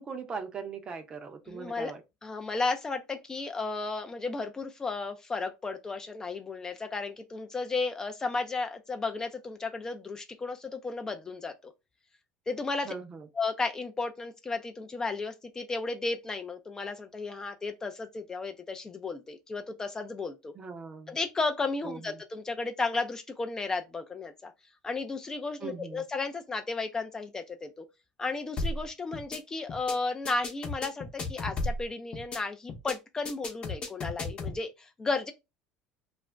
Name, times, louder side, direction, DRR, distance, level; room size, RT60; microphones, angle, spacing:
voice 1, 0.0-2.0 12.8-13.3 20.5-21.2 21.8-22.0 25.6-26.0, right 5 dB, 35° right, 0.6 m, -40 dB
voice 2, 1.5-1.9 2.2-11.7 12.5-12.9 13.3-20.5 21.1-24.5 24.8-27.8 28.2-35.3, left 3 dB, 20° left, 0.4 m, -34 dB
sound 1, 28.6-28.8 29.1-29.4 29.7-29.9 30.2-31.8 32.1-32.4 32.7-32.9 33.2-34.6, left 2 dB, 40° left, 0.8 m, -34 dB
2.4 x 2.0 x 3.2 m
supercardioid pair, 100°, 3 cm